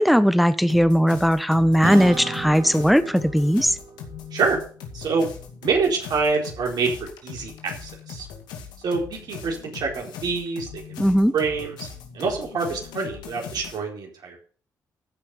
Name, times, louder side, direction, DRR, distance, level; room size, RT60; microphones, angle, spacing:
voice 1, 0.0-3.8 11.0-11.3, equal, ahead, 12 dB, 1.1 m, -18 dB
sound 1, 0.7-13.8, left 7 dB, 85° left, 2.3 m, -40 dB
Acoustic guitar / Strum, 1.8-6.6, right 4 dB, 50° right, 2.6 m, -36 dB
voice 2, 4.9-5.3 5.6-8.3 8.8-11.1 11.3-11.9 12.1-14.4, right 4 dB, 70° right, 0 dB, 4.3 m, -26 dB
14.5 x 5.7 x 6.9 m, 0.42 s
supercardioid pair, 55°, 7 cm